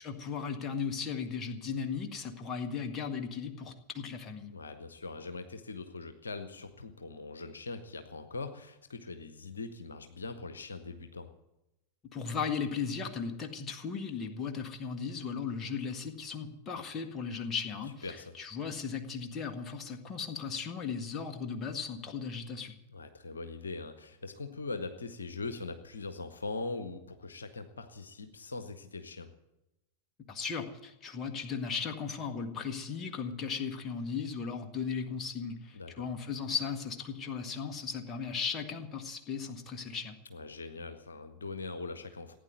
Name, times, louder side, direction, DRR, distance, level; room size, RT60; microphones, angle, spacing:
voice 1, 0.0-4.5 12.1-22.8 30.3-40.2, left 6 dB, 25° left, 4 dB, 1.8 m, -36 dB
voice 2, 4.5-11.3 18.0-18.4 22.9-29.3 35.7-36.1 40.3-42.4, left 3 dB, 70° left, 9 dB, 1.1 m, -41 dB
16.0 x 9.6 x 9.3 m, 0.92 s
figure-of-eight pair, 90°, 0 cm